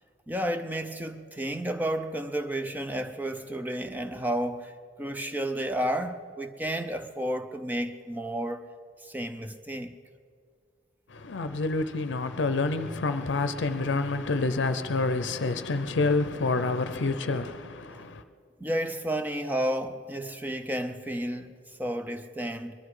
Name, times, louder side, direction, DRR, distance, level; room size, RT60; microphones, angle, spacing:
voice 1, 0.3-8.7 9.0-9.9 17.9-18.1 18.6-22.7, right 1 dB, 10° right, 0.5 m, -32 dB
voice 2, 11.1-18.2, left 3 dB, 75° left, 0.6 m, -28 dB
21.0 x 11.5 x 4.9 m
head